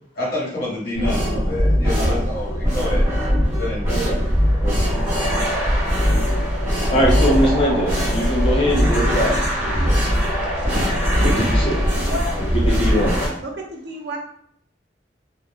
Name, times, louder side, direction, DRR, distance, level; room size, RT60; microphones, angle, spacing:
voice 1, 0.1-3.1 3.4-4.1, left 1 dB, 55° left, -5 dB, 1.1 m, -28 dB
sound 1, 0.9-13.3, equal, 15° right, 0.9 m, -20 dB
voice 2, 3.9-4.3 4.6-4.9 5.4-5.7 6.9-10.0 11.4-11.7 12.7-13.2, equal, 30° left, -2 dB, 0.5 m, -22 dB
voice 3, 10.5-11.4 12.1-12.4 13.4-14.2, equal, 65° right, 0 dB, 0.7 m, -29 dB
2.3 x 2.1 x 3.4 m, 0.66 s
head